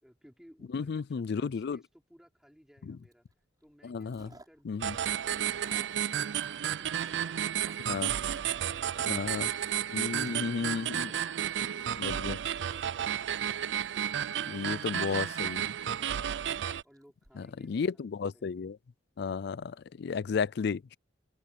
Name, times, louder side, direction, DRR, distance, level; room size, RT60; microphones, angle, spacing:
voice 1, 0.0-3.2 3.6-9.8 16.8-18.6, equal, 5° right, 4.5 m, -59 dB
voice 2, 0.7-1.8 2.9-3.0 3.8-4.3 4.7-5.0 7.9-8.1 9.0-9.5 9.9-11.1 12.0-12.4 14.5-15.6 17.4-18.8 19.2-21.0, left 5 dB, 60° left, 0.4 m, -33 dB
Chewing mastication, 3.1-3.3 3.6-4.6 4.9-9.2 9.5-9.9 10.1-10.5 10.8-17.3, right 2 dB, 20° right, 5.3 m, -57 dB
sound 1, 4.8-16.8, right 10 dB, 70° right, 0.4 m, -32 dB
open air
head